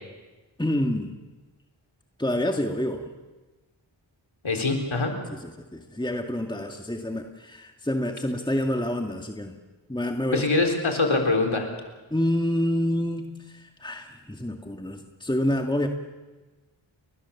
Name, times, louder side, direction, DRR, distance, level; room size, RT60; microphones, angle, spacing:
voice 1, 0.6-1.1 2.2-3.1 5.3-9.5 9.9-10.7 12.1-15.9, left 1 dB, 10° left, 3 dB, 1.9 m, -28 dB
voice 2, 4.4-5.2 10.3-11.7, left 3 dB, 85° left, 3 dB, 4.1 m, -23 dB
30.0 x 22.5 x 7.2 m, 1.2 s
wide cardioid pair, 50°, 46 cm